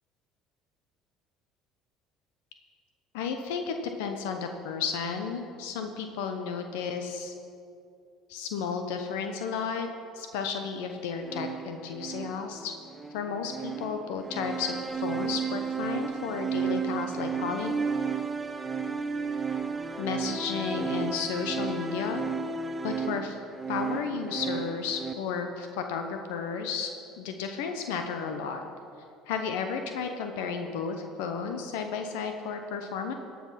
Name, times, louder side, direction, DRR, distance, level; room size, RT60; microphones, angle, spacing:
voice 1, 3.1-7.3 8.3-9.9 10.1-12.7 13.1-17.7 20.0-22.2 22.8-23.4 23.7-26.9 27.2-28.6 29.3-33.1, left 6 dB, 80° left, 6 dB, 0.8 m, -33 dB
sound 1, 11.2-25.1, right 5 dB, 20° right, 0.8 m, -33 dB
17.0 x 6.0 x 5.8 m, 2.5 s
supercardioid pair, 80°, 0 cm